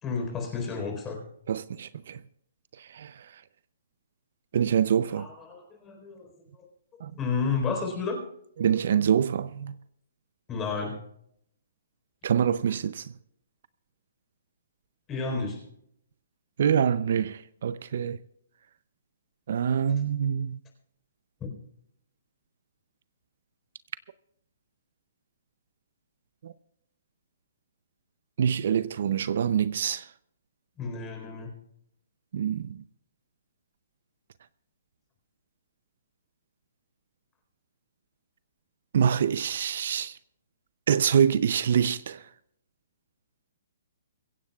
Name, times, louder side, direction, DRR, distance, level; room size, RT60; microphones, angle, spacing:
voice 1, 0.0-1.2 5.2-6.7 7.1-8.2 10.5-11.0 15.1-15.6 21.4-21.5 30.8-31.5, left 4 dB, 15° left, 4.1 m, -31 dB
voice 2, 1.5-2.2 2.8-3.4 4.5-5.3 7.0-7.1 8.6-9.8 12.2-13.1 16.6-18.2 19.5-20.6 26.4-26.5 28.4-30.1 32.3-32.8 38.9-40.2 40.9-42.3, right 8 dB, 60° right, 0.5 m, -25 dB
24.0 x 16.0 x 2.4 m
hypercardioid pair, 160°, 0 cm